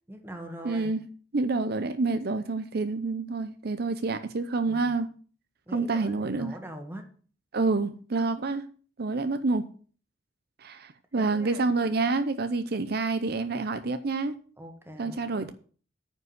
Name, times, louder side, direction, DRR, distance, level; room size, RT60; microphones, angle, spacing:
voice 1, 0.1-0.9 4.6-4.9 5.7-7.1 11.1-11.6 14.6-15.5, equal, 15° right, 5 dB, 1.8 m, -43 dB
voice 2, 0.6-1.0 1.3-5.1 5.7-6.5 7.5-8.6 9.0-9.7 10.6-14.3 15.0-15.5, right 3 dB, 60° right, 11 dB, 0.7 m, -28 dB
9.5 x 5.2 x 8.0 m, 0.42 s
head